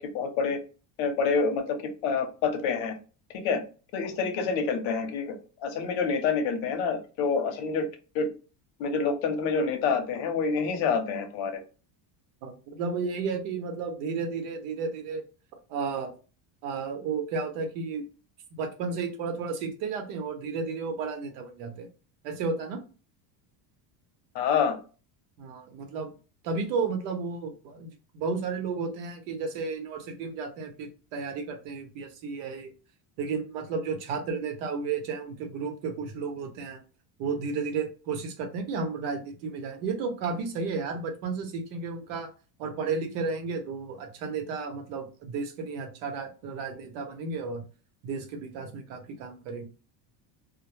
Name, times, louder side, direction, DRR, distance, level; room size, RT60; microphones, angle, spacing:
voice 1, 0.1-0.6 1.0-2.9 3.4-3.6 3.9-5.4 5.6-7.9 8.1-8.3 8.8-11.6 24.3-24.8, left 5 dB, 65° left, 6 dB, 0.8 m, -27 dB
voice 2, 12.4-15.2 15.7-16.1 16.6-18.0 18.6-21.9 22.2-22.8 25.4-26.1 26.4-32.7 33.2-36.8 37.2-42.3 42.6-47.6 48.0-49.7, right 4 dB, 90° right, 5 dB, 0.9 m, -33 dB
2.1 x 2.1 x 3.0 m, 0.35 s
cardioid pair, 150°, 50 cm